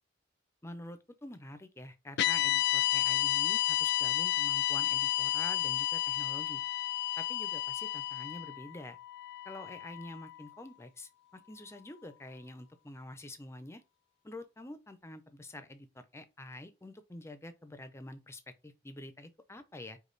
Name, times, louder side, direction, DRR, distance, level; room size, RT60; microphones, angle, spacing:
voice 1, 0.6-6.6 7.2-9.0 9.4-13.8 14.2-20.0, left 1 dB, 15° left, 0.6 m, -47 dB
sound 1, 2.2-10.5, left 15 dB, 60° left, 0.3 m, -31 dB
5.1 x 2.3 x 3.9 m
head